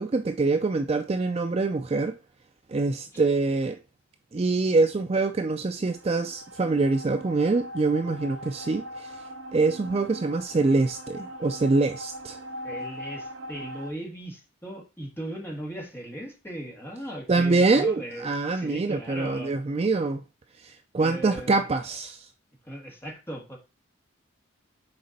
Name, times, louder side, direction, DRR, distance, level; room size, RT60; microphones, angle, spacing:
voice 1, 0.0-2.2 2.7-3.8 4.3-9.1 9.5-12.4 17.3-20.2 20.6-22.3, right 3 dB, 30° right, 0.3 m, -25 dB
sound 1, 5.8-13.9, equal, 70° right, 0.8 m, -41 dB
voice 2, 12.6-19.5 21.0-22.0 22.6-23.6, equal, 10° left, 1.8 m, -38 dB
6.5 x 4.3 x 4.1 m
head